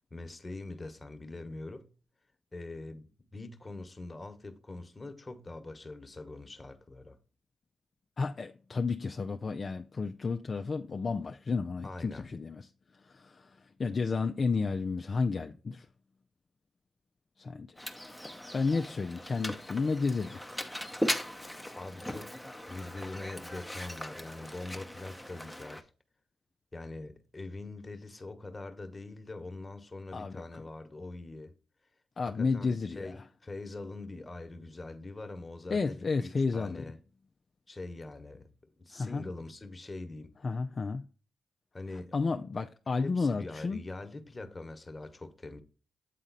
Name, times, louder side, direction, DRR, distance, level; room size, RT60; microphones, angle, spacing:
voice 1, 0.1-1.9 2.5-7.2 11.8-12.3 21.8-22.4 22.7-25.9 26.7-31.5 32.2-37.0 37.7-38.5 38.8-40.3 41.7-42.1 43.0-45.6, left 2 dB, 30° left, 1.2 m, -43 dB
voice 2, 8.2-12.7 13.0-15.9 17.4-17.7 18.5-20.5 30.1-30.4 32.2-33.2 35.7-36.8 38.9-39.2 40.4-41.1 42.1-43.8, left 4 dB, 50° left, 0.4 m, -32 dB
Mechanisms, 17.8-25.8, equal, 5° left, 0.8 m, -39 dB
8.3 x 3.8 x 4.1 m
supercardioid pair, 45°, 0 cm